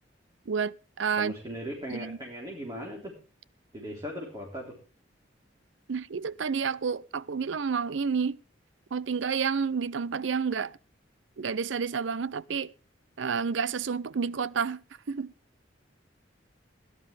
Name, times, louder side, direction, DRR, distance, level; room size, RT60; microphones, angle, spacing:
voice 1, 0.5-1.3 1.9-2.2 5.9-8.4 8.9-10.8 11.4-12.7 13.2-15.3, right 6 dB, 85° right, 0.5 m, -30 dB
voice 2, 1.1-3.1 3.7-4.8, equal, 25° right, 3.6 m, -38 dB
18.0 x 11.0 x 3.4 m
head